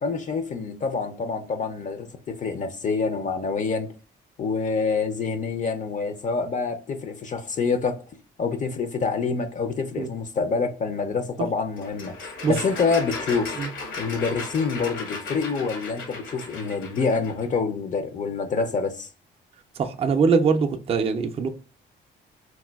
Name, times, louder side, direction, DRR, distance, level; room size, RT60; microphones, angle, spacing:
voice 1, 0.0-3.9 4.4-8.0 8.4-12.1 12.5-13.5 14.0-19.1, left 4 dB, 40° left, 0.4 m, -26 dB
sound 1, 11.8-17.5, left 3 dB, 75° left, 1.0 m, -36 dB
voice 2, 19.8-21.5, right 5 dB, 30° right, 0.4 m, -22 dB
4.0 x 2.2 x 2.2 m
cardioid pair, 90°, 20 cm